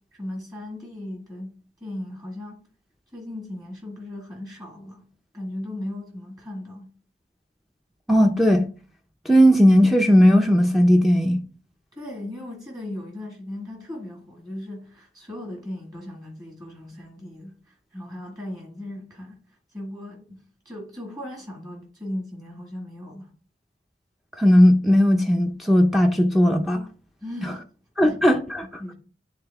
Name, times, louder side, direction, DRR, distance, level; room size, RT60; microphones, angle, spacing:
voice 1, 0.2-1.5 1.8-2.6 3.1-5.1 5.3-6.9 12.0-19.4 19.7-23.3 27.2-27.6 28.0-28.1 28.8-28.9, left 1 dB, 20° right, 1.7 m, -37 dB
voice 2, 8.1-8.7 9.3-11.4 24.4-26.8 27.4-27.5 28.0-28.9, equal, ahead, 0.5 m, -17 dB
9.9 x 3.5 x 3.4 m
head